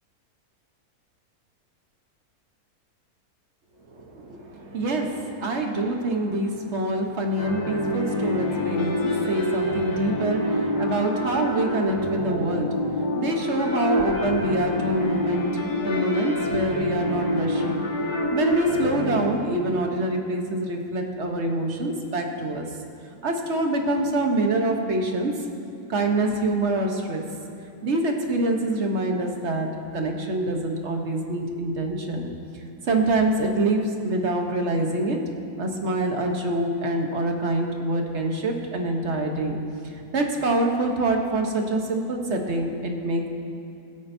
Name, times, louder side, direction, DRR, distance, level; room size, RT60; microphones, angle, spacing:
voice 1, 3.9-22.6 23.2-25.5 25.9-27.2 27.8-32.3 32.8-35.2 35.6-39.6 39.8-43.3, right 2 dB, 50° right, 2 dB, 1.2 m, -26 dB
sound 1, 7.4-19.3, left 1 dB, 85° left, 2.0 m, -26 dB
21.0 x 8.9 x 2.7 m, 2.6 s
omnidirectional pair, 1.6 m